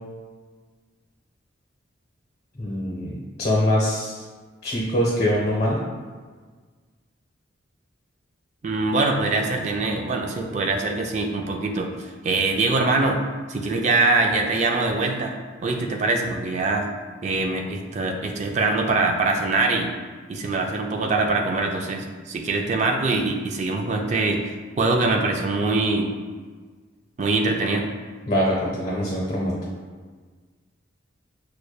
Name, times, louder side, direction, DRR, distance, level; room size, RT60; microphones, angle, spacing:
voice 1, 2.6-4.2 4.6-5.8 28.3-29.6, equal, 35° left, -4 dB, 0.7 m, -23 dB
voice 2, 8.6-13.2 13.5-15.3 15.6-16.9 17.2-19.9 20.3-24.4 24.8-26.1 27.2-27.9, right 3 dB, 35° right, 2 dB, 0.3 m, -23 dB
6.3 x 2.2 x 2.3 m, 1.5 s
head